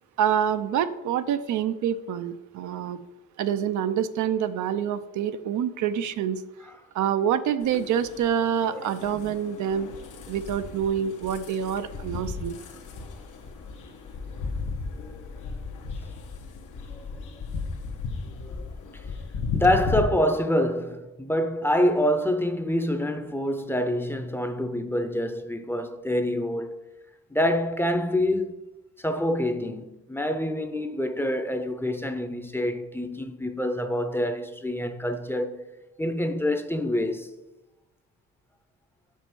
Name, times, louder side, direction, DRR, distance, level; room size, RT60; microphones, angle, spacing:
voice 1, 0.2-3.0 3.4-6.4 6.9-9.9 10.3-12.6, right 9 dB, 75° right, 0.6 m, -26 dB
sound 1, 7.6-20.0, left 4 dB, 80° left, 1.2 m, -35 dB
voice 2, 19.5-26.8 27.3-28.6 29.0-35.6 36.0-37.3, left 1 dB, 5° left, 0.7 m, -26 dB
5.5 x 5.4 x 6.2 m
cardioid pair, 90°, 30 cm